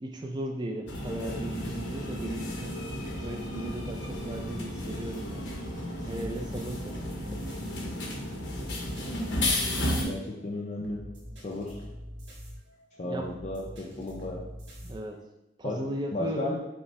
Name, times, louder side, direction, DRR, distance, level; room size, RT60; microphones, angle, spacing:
voice 1, 0.0-2.8 3.2-5.5 6.1-7.4 13.0-13.3 14.8-15.2 15.6-16.6, right 1 dB, 20° right, 2 dB, 0.4 m, -36 dB
sound 1, 0.9-10.0, left 1 dB, 65° left, 0.8 m, -33 dB
sound 2, 1.8-15.2, equal, 65° right, 1.6 m, -46 dB
voice 2, 9.8-11.1 11.4-11.8 13.0-14.4 15.6-15.8 16.1-16.6, left 2 dB, 35° left, -2 dB, 0.4 m, -34 dB
6.0 x 2.1 x 4.2 m, 0.92 s
head